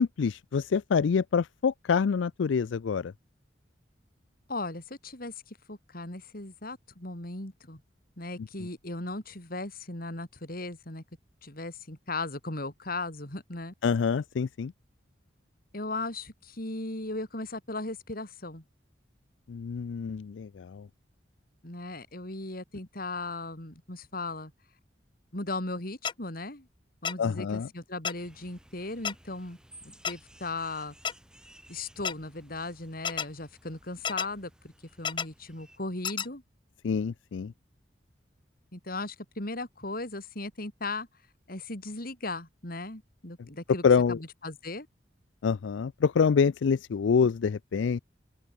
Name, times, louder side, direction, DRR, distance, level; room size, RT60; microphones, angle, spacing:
voice 1, 0.0-3.1 8.4-8.5 13.8-14.7 19.5-20.9 27.2-27.7 36.8-37.5 43.8-44.2 45.4-48.0, left 6 dB, 85° left, 0.4 m, -26 dB
voice 2, 4.5-7.8 8.2-11.0 11.4-13.7 15.7-18.6 21.6-24.5 25.3-26.7 27.0-29.6 29.8-30.9 31.7-34.7 35.0-36.4 38.7-41.1 41.5-44.9, left 2 dB, 50° left, 4.2 m, -37 dB
sound 1, 26.0-26.1 27.0-27.1 28.0-28.1 29.0-29.1 30.0-30.1 31.0-31.1 32.0-32.1 33.0-33.2 34.0-34.3 35.0-35.2 36.0-36.3, left 7 dB, 25° left, 0.4 m, -30 dB
sound 2, 28.1-35.8, right 1 dB, 5° right, 6.9 m, -57 dB
open air
head